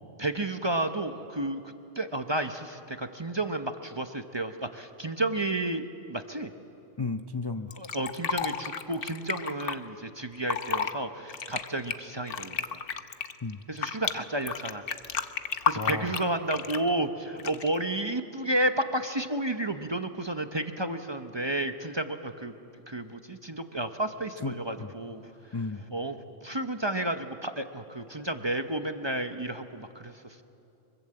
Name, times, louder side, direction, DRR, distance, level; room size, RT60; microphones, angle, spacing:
voice 1, 0.2-1.6 2.0-5.8 6.1-6.5 7.7-12.8 13.7-14.9 15.7-22.5 22.9-25.2 25.9-26.2 26.4-30.1, right 1 dB, 25° right, 7 dB, 0.7 m, -31 dB
voice 2, 7.0-7.7 13.4-13.6 15.7-16.2 24.4-24.9 25.5-25.8, left 3 dB, 30° left, 7 dB, 0.4 m, -33 dB
Fill (with liquid), 7.7-9.7 10.3-10.9 11.3-14.1 14.5-16.9 17.4-17.8, left 6 dB, 50° left, 1.0 m, -31 dB
24.5 x 22.5 x 7.8 m, 2.7 s
omnidirectional pair, 1.3 m